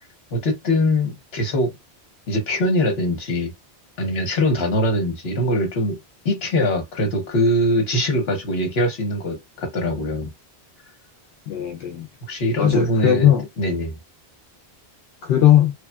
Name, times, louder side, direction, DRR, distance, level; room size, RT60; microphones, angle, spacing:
voice 1, 0.3-1.7 2.3-3.5 4.0-6.0 6.2-10.3 12.3-13.9, left 1 dB, 70° left, 1.2 m, -22 dB
voice 2, 11.5-12.1 12.6-13.5 15.2-15.7, left 11 dB, 85° left, 0.9 m, -18 dB
3.2 x 2.3 x 2.2 m
omnidirectional pair, 1.1 m